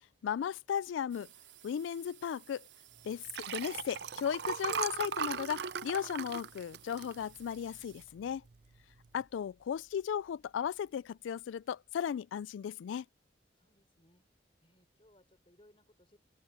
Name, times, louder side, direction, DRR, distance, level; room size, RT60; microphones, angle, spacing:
voice 1, 0.2-1.3 1.6-2.6 3.0-8.4 9.1-13.1, left 8 dB, 90° left, 0.3 m, -36 dB
sound 1, 1.1-8.0, right 13 dB, 75° right, 2.9 m, -59 dB
Liquid, 3.1-7.8 8.2-8.5 8.8-8.9, right 7 dB, 60° right, 0.5 m, -38 dB
sound 2, 7.2-11.8, equal, 55° left, 7.9 m, -69 dB
voice 2, 13.5-16.2, left 1 dB, 30° left, 5.0 m, -66 dB
open air
head